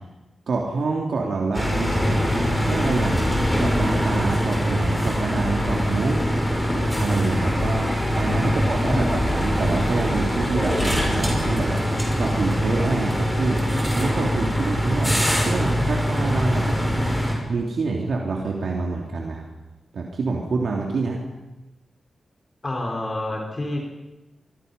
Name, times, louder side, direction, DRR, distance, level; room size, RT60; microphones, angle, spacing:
voice 1, 0.5-3.2 3.6-6.2 7.0-7.9 8.2-13.6 13.9-17.1 17.5-19.4 19.9-21.2, right 3 dB, 70° right, -1 dB, 3.2 m, -26 dB
sound 1, 1.5-17.3, equal, ahead, 6.0 m, -23 dB
voice 2, 8.4-9.2 22.6-23.8, left 1 dB, 30° left, 1 dB, 4.3 m, -28 dB
26.0 x 24.0 x 5.6 m, 1.0 s
wide cardioid pair, 140°, 0 cm